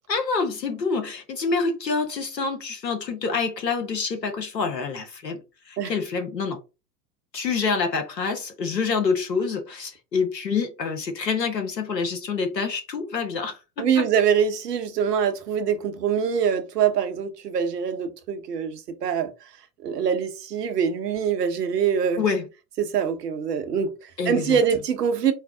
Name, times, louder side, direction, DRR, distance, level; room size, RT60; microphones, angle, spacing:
voice 1, 0.1-5.4 5.7-6.6 7.3-14.0 22.2-22.4 24.2-24.6, left 5 dB, 80° left, 1.0 m, -27 dB
voice 2, 13.8-19.3 19.8-22.2 22.8-25.3, right 7 dB, 70° right, 0.8 m, -24 dB
4.6 x 2.0 x 3.4 m
figure-of-eight pair, 80°, 49 cm